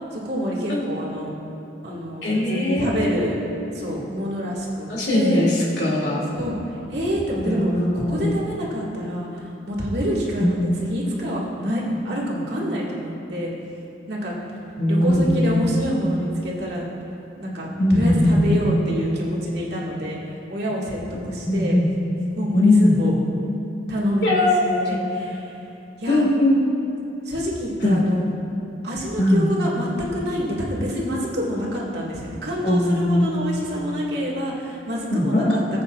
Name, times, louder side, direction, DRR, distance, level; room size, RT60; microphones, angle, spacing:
voice 1, 0.1-1.3 1.8-3.4 3.7-5.5 6.3-6.6 6.9-13.5 14.1-14.3 14.9-16.8 17.4-21.8 22.4-23.1 23.9-25.6 26.0-26.3 27.3-28.2 28.8-35.8, equal, 70° right, -5 dB, 2.1 m, -27 dB
voice 2, 2.2-3.3 4.9-6.2 7.4-8.3 10.4-10.5 14.8-15.6 17.8-18.5 21.4-21.9 22.5-23.0 24.2-25.0 26.1-26.6 27.8-28.0 29.2-29.5 32.6-33.3 35.1-35.6, left 1 dB, 75° left, -5 dB, 2.7 m, -20 dB
19.0 x 8.4 x 2.5 m, 2.8 s
head